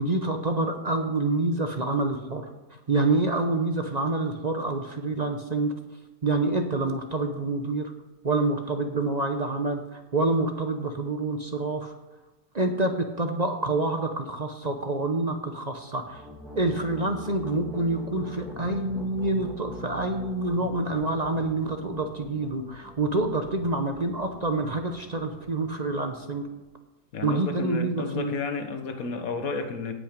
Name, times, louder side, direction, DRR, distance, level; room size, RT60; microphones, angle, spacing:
voice 1, 0.0-2.4 2.9-5.7 6.2-7.9 8.2-11.9 12.5-16.2 16.5-26.5 27.2-28.3, right 2 dB, 35° right, 5 dB, 0.7 m, -27 dB
sound 1, 16.0-26.6, left 2 dB, ahead, 1.6 m, -44 dB
voice 2, 27.1-29.9, left 4 dB, 60° left, 7 dB, 1.5 m, -32 dB
17.0 x 5.8 x 5.1 m, 1.1 s
omnidirectional pair, 1.7 m